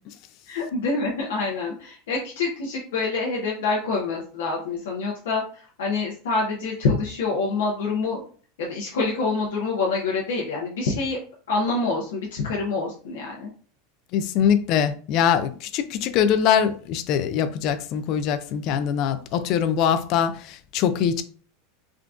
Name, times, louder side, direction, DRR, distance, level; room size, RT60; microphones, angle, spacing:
voice 1, 0.5-5.4 5.8-8.2 8.6-11.2 11.5-13.5, left 3 dB, 80° left, 0.7 m, -26 dB
voice 2, 14.1-21.2, left 8 dB, 55° left, 0.4 m, -23 dB
3.7 x 2.2 x 2.4 m
hypercardioid pair, 105°, 0 cm